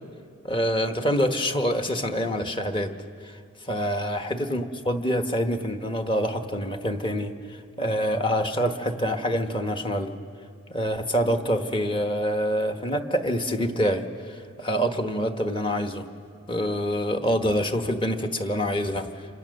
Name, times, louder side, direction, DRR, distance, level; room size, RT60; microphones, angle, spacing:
voice 1, 0.4-2.9 3.2-3.4 3.6-10.1 10.7-16.0 16.5-19.1, equal, 25° left, 6 dB, 1.3 m, -26 dB
27.0 x 25.5 x 6.6 m, 2.2 s
head